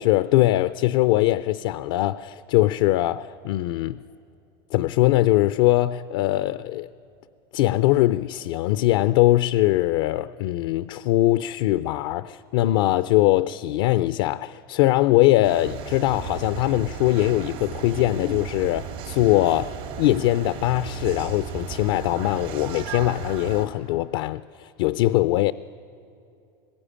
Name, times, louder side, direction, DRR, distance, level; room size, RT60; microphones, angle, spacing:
voice 1, 0.0-4.0 4.7-6.9 7.5-25.5, left 16 dB, 75° left, 0.5 m, -21 dB
sound 1, 15.4-23.7, right 8 dB, 80° right, 4.6 m, -35 dB
24.5 x 21.0 x 10.0 m
supercardioid pair, 120°, 13 cm